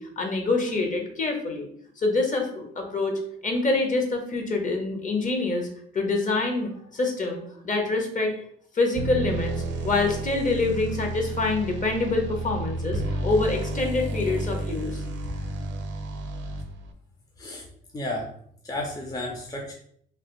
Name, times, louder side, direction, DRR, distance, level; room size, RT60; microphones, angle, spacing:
voice 1, 0.0-1.7 2.0-5.7 5.9-8.3 8.7-15.0, left 3 dB, 40° left, 3 dB, 0.8 m, -26 dB
sound 1, 8.9-16.9, right 2 dB, 65° right, 0.5 m, -31 dB
voice 2, 17.9-18.3 18.6-19.7, left 1 dB, 20° left, 0 dB, 0.5 m, -32 dB
3.2 x 2.4 x 3.0 m, 0.66 s
cardioid pair, 90°, 20 cm